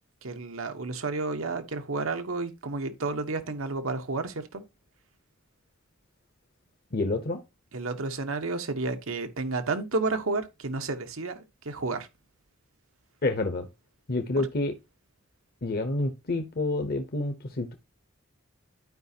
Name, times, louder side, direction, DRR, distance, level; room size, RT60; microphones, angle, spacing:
voice 1, 0.2-4.6 7.7-12.1, right 3 dB, 85° right, 1.2 m, -31 dB
voice 2, 6.9-7.4 13.2-13.7 14.1-14.7 15.6-17.7, left 2 dB, 50° left, 0.9 m, -28 dB
12.0 x 5.0 x 2.8 m
head